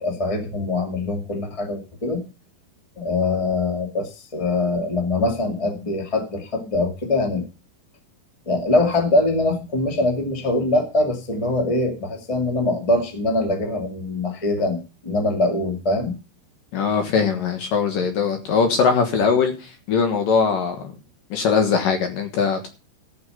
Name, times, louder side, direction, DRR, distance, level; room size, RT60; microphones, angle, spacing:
voice 1, 0.0-2.2 3.0-7.4 8.4-16.2, left 2 dB, 45° left, 4 dB, 0.4 m, -23 dB
voice 2, 16.7-20.9 21.3-22.7, left 5 dB, 60° left, 5 dB, 2.7 m, -21 dB
14.5 x 7.1 x 5.6 m, 0.32 s
omnidirectional pair, 5.1 m